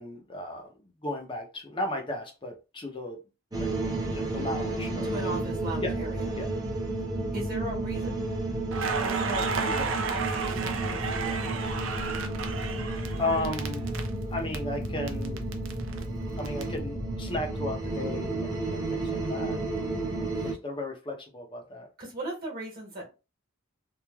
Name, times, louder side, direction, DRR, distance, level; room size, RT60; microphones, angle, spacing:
voice 1, 0.0-3.2 3.5-3.7 4.1-5.1 5.8-6.0 6.4-6.6 13.2-13.9 14.3-15.4 16.4-19.6 20.2-21.9, left 2 dB, 20° left, 0.6 m, -35 dB
sound 1, 3.5-20.5, right 2 dB, 15° right, 0.6 m, -32 dB
voice 2, 5.0-6.2 7.3-8.1 9.0-11.8 20.4-20.5 22.0-23.1, right 1 dB, 40° right, 1.2 m, -38 dB
Crackle, 8.7-14.6 14.8-16.6, right 5 dB, 60° right, 0.4 m, -33 dB
3.1 x 2.3 x 2.2 m
head